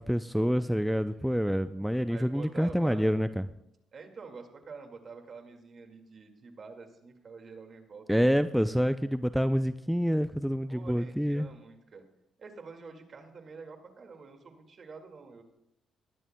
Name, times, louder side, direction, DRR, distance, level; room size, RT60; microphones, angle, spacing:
voice 1, 0.0-3.5 8.1-11.5, equal, ahead, 11 dB, 0.4 m, -27 dB
voice 2, 2.1-3.3 3.9-8.3 10.7-12.0 12.4-15.4, right 4 dB, 50° right, 5 dB, 2.0 m, -47 dB
19.0 x 12.5 x 2.2 m, 0.81 s
cardioid pair, 90°, 0 cm